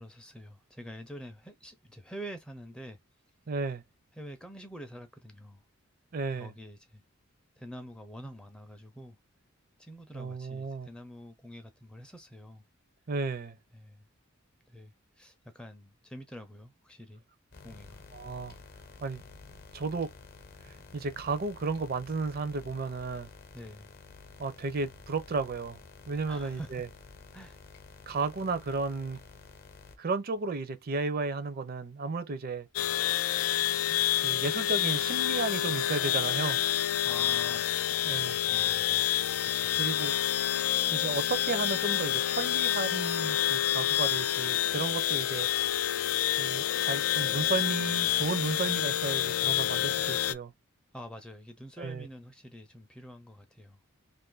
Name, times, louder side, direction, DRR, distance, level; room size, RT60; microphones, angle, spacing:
voice 1, 0.0-3.0 4.1-5.6 6.3-7.0 7.6-9.2 9.8-12.6 13.7-14.1 14.7-17.2 17.6-18.0 23.5-23.9 26.3-26.8 27.3-27.6 37.0-38.0 38.4-39.2 39.4-39.8 50.9-53.8, equal, 5° left, 0.4 m, -46 dB
voice 2, 3.5-3.8 6.1-6.5 10.1-10.9 13.1-13.6 18.1-18.6 19.0-19.2 19.7-20.1 20.9-23.3 24.4-25.8 26.1-26.9 28.1-29.2 30.0-32.7 34.2-36.6 38.0-38.4 39.8-40.1 40.9-45.5 46.4-50.5 51.8-52.1, right 3 dB, 45° right, 0.5 m, -33 dB
sound 1, 17.5-30.0, left 4 dB, 45° left, 0.7 m, -51 dB
sound 2, 32.8-50.3, left 12 dB, 85° left, 0.3 m, -28 dB
2.5 x 2.5 x 3.7 m
head